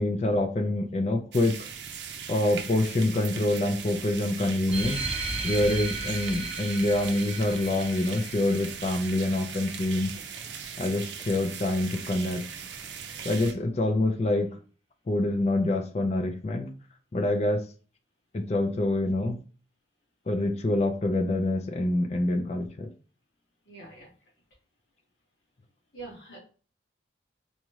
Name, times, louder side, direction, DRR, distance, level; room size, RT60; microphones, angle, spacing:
voice 1, 0.0-1.7 2.3-5.0 5.4-10.1 10.8-12.4 13.2-14.5 15.1-16.7 17.1-17.6 18.3-19.4 20.3-22.9, left 1 dB, 35° left, 0.4 m, -26 dB
sound 1, 1.3-13.5, right 7 dB, 70° right, 0.5 m, -39 dB
sound 2, 4.7-9.7, right 2 dB, 30° right, 0.7 m, -35 dB
voice 2, 23.7-24.1 25.9-26.4, right 3 dB, 60° left, 1.8 m, -44 dB
4.1 x 2.4 x 3.1 m
head